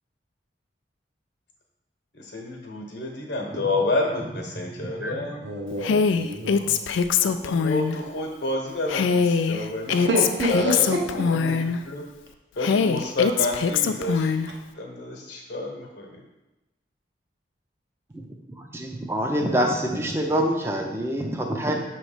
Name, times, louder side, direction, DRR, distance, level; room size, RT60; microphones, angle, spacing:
voice 1, 2.1-5.4 7.2-10.1 10.5-12.0 12.6-14.3 14.7-16.2, left 2 dB, 65° left, 0 dB, 1.0 m, -29 dB
voice 2, 4.8-5.2 18.1-18.2 18.5-21.7, right 1 dB, 15° right, 2 dB, 0.5 m, -26 dB
voice 3, 5.4-6.8 9.9-11.0, right 1 dB, 65° right, 0 dB, 1.1 m, -27 dB
Female speech woman speaking, 5.8-8.0 8.9-11.8 12.6-14.5, left 6 dB, 85° left, 0.3 m, -22 dB
6.1 x 3.1 x 5.0 m, 1.0 s
head